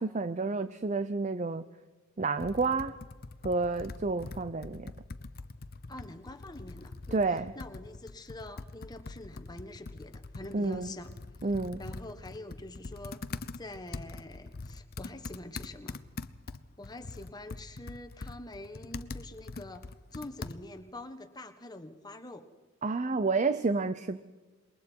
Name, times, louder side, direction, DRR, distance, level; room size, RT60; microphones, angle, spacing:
voice 1, 0.0-1.6 2.2-2.9 3.4-4.9 7.1-7.5 10.5-10.9 11.4-11.8 22.8-24.2, right 3 dB, 35° right, 13 dB, 0.6 m, -30 dB
Computer keyboard, 2.4-20.9, left 3 dB, 45° left, 0.7 m, -44 dB
voice 2, 5.9-7.2 7.5-11.1 11.8-13.2 13.6-16.0 16.8-22.5, left 1 dB, 20° left, 7 dB, 1.3 m, -45 dB
27.0 x 22.5 x 4.6 m, 1.3 s
head